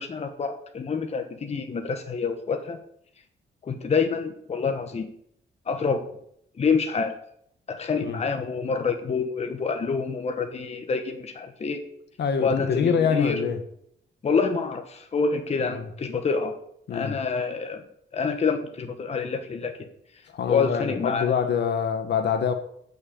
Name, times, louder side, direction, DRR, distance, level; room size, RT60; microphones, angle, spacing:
voice 1, 0.0-2.8 3.6-5.1 5.7-6.0 6.6-7.2 7.7-11.8 12.4-13.4 14.2-16.6 16.9-17.8 18.1-19.7 20.5-21.3, left 5 dB, 35° left, 1.3 m, -27 dB
voice 2, 12.2-13.6 15.6-15.9 16.9-17.2 20.3-22.5, left 7 dB, 60° left, 1.4 m, -25 dB
12.5 x 6.5 x 8.6 m
wide cardioid pair, 175°, 19 cm